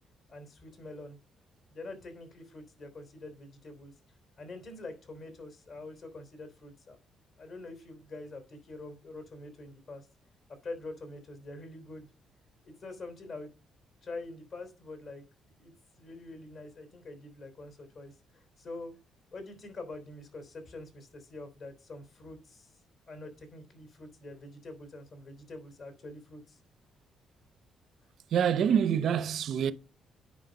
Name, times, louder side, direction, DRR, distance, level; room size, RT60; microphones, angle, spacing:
voice 1, 0.3-1.2 1.7-3.9 4.4-7.0 7.4-10.1 10.6-12.1 12.6-13.5 14.0-15.2 15.6-15.7 16.0-19.0 19.3-22.7 23.1-26.6, left 2 dB, 55° left, 3.6 m, -45 dB
voice 2, 28.3-29.7, right 8 dB, 70° right, 0.7 m, -26 dB
9.3 x 5.4 x 5.2 m
cardioid pair, 90°, 0 cm